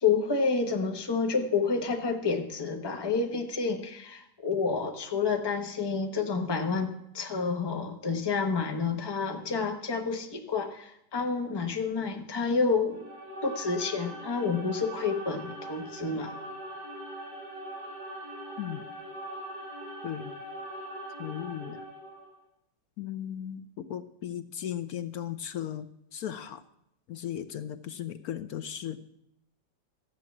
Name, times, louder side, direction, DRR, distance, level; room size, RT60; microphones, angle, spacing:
voice 1, 0.0-13.0 13.4-16.4, left 4 dB, 15° left, 4 dB, 1.0 m, -29 dB
sound 1, 12.9-22.3, right 1 dB, 80° right, 6.0 m, -41 dB
voice 2, 20.0-20.4 21.2-21.8 23.0-26.6 27.1-29.0, left 10 dB, 65° left, 11 dB, 1.0 m, -36 dB
13.5 x 8.9 x 7.2 m, 0.78 s
omnidirectional pair, 1.9 m